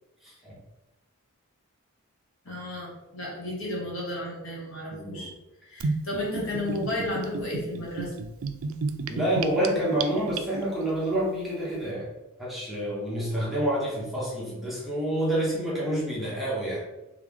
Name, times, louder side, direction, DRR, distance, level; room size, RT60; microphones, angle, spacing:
voice 1, 0.2-0.5 4.9-5.3 9.1-12.1 12.4-16.8, right 1 dB, ahead, -7 dB, 1.1 m, -28 dB
voice 2, 2.4-5.3 5.7-8.1, left 1 dB, 60° left, -4 dB, 1.3 m, -33 dB
Gurgling / Bathtub (filling or washing), 5.8-10.9, right 4 dB, 60° right, 0.3 m, -32 dB
3.4 x 3.3 x 3.6 m, 0.98 s
head